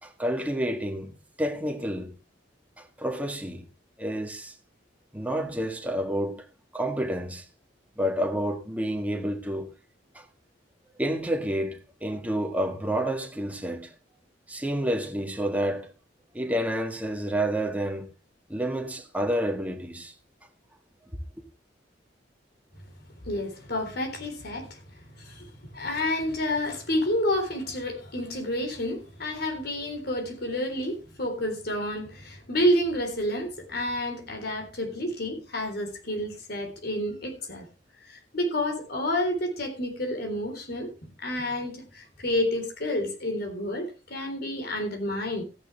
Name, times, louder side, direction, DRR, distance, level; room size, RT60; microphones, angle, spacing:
voice 1, 0.0-2.1 2.8-3.7 4.0-4.5 5.1-6.5 6.7-7.5 8.0-9.7 10.1-10.3 11.0-13.9 14.5-15.9 16.3-18.1 18.5-20.1, equal, 10° right, 1.7 m, -29 dB
voice 2, 23.3-24.8 25.2-25.5 25.7-37.7 38.1-45.4, left 1 dB, 60° left, 3.8 m, -29 dB
14.5 x 10.5 x 3.3 m
head